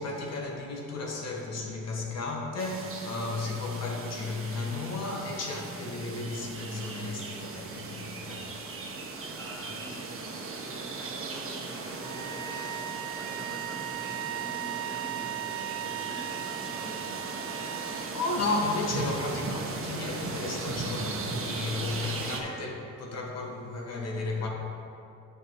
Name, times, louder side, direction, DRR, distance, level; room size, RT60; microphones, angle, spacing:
voice 1, 0.0-8.5 17.9-24.5, left 3 dB, 55° left, -1 dB, 1.5 m, -34 dB
sound 1, 2.6-22.4, right 3 dB, 45° right, 1.1 m, -38 dB
voice 2, 9.3-18.2 24.4-24.5, equal, 10° left, -2 dB, 1.1 m, -48 dB
sound 2, 12.0-18.1, right 12 dB, 80° right, 0.5 m, -37 dB
9.0 x 5.4 x 4.6 m, 2.7 s
cardioid pair, 90°, 30 cm